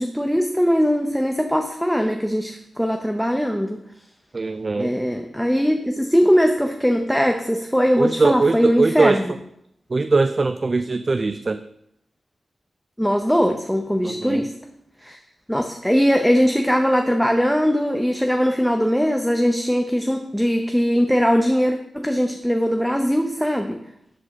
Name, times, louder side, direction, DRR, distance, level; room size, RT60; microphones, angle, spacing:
voice 1, 0.0-3.8 4.8-9.2 13.0-14.5 15.0-15.2 15.5-23.8, equal, ahead, 4 dB, 0.6 m, -20 dB
voice 2, 4.3-5.0 8.0-9.2 9.9-11.6 14.0-14.5, right 3 dB, 40° right, 11 dB, 0.3 m, -21 dB
7.5 x 4.0 x 6.4 m, 0.77 s
cardioid pair, 70°, 0 cm